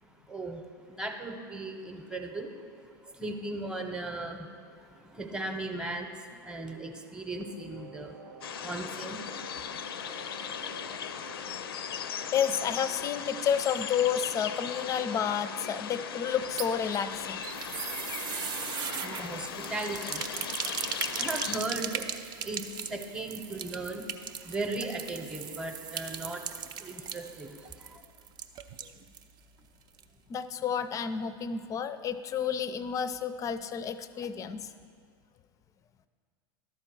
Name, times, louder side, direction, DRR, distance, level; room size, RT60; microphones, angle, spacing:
voice 1, 0.0-9.9 18.4-28.0, right 2 dB, 5° right, 4 dB, 0.8 m, -38 dB
sound 1, 7.4-13.4, right 4 dB, 75° right, 0.8 m, -50 dB
sound 2, 8.4-21.6, left 8 dB, 85° left, 0.4 m, -38 dB
voice 2, 12.3-17.5 30.3-34.6, left 8 dB, 25° left, 13 dB, 0.4 m, -30 dB
sound 3, 16.3-29.3 29.6-29.7 30.0-30.1, right 8 dB, 35° right, 0.5 m, -38 dB
11.5 x 4.5 x 6.1 m, 2.2 s
hypercardioid pair, 100°, 12 cm